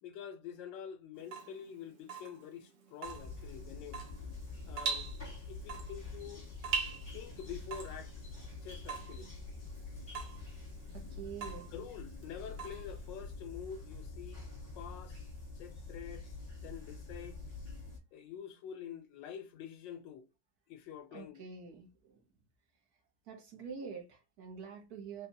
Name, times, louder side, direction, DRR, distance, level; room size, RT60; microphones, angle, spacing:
voice 1, 0.0-4.0 4.7-5.1 5.5-6.5 6.9-8.1 8.6-9.3 11.7-14.4 14.8-15.2 15.5-16.3 16.6-17.4 18.1-20.3 20.7-21.4, left 8 dB, 85° left, 1.3 m, -47 dB
Water tap faucet / Drip, 1.2-13.4, right 5 dB, 80° right, 1.5 m, -43 dB
sound 1, 3.0-18.0, left 3 dB, 35° left, 1.8 m, -46 dB
voice 2, 10.9-11.7 21.1-22.3 22.9-25.3, right 6 dB, 60° right, 1.5 m, -47 dB
4.3 x 2.6 x 2.6 m
omnidirectional pair, 1.9 m